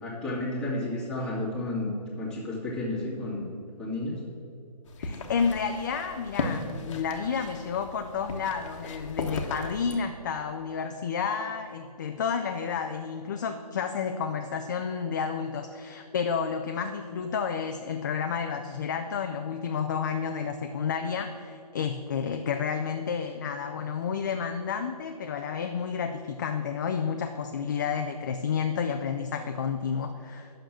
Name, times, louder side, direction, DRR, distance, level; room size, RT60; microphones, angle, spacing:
voice 1, 0.0-4.2, left 2 dB, 5° left, -7 dB, 1.9 m, -32 dB
sound 1, 4.9-10.0, left 3 dB, 45° left, 1.1 m, -36 dB
voice 2, 5.0-30.5, left 6 dB, 30° left, 6 dB, 0.4 m, -31 dB
9.0 x 6.5 x 7.2 m, 2.5 s
hypercardioid pair, 150°, 21 cm